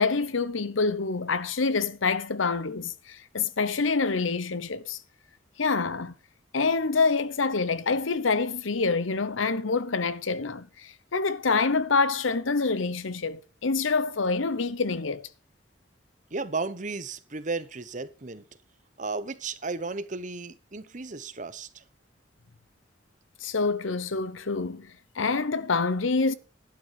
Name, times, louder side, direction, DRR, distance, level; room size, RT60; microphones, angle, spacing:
voice 1, 0.0-5.0 5.6-6.1 6.5-15.3 23.4-24.9 25.2-26.3, left 4 dB, 85° left, 0.9 m, -26 dB
voice 2, 16.3-18.4 19.0-21.8, right 3 dB, 40° right, 1.0 m, -34 dB
12.0 x 9.1 x 4.7 m
head